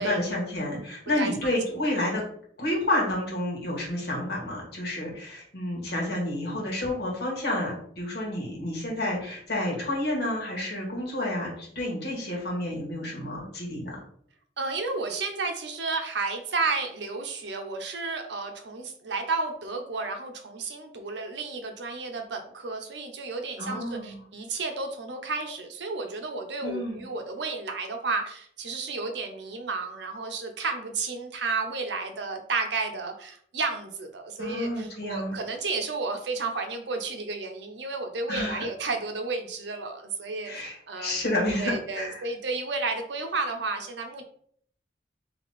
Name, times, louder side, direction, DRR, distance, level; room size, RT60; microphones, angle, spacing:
voice 1, 0.0-2.2 2.6-14.0 23.6-24.2 26.6-27.0 34.4-35.4 38.3-38.6 40.4-42.2, left 1 dB, 65° left, -3 dB, 1.5 m, -30 dB
voice 2, 14.6-41.2 41.6-44.2, right 3 dB, 85° right, 5 dB, 0.7 m, -32 dB
3.5 x 2.8 x 4.1 m, 0.62 s
head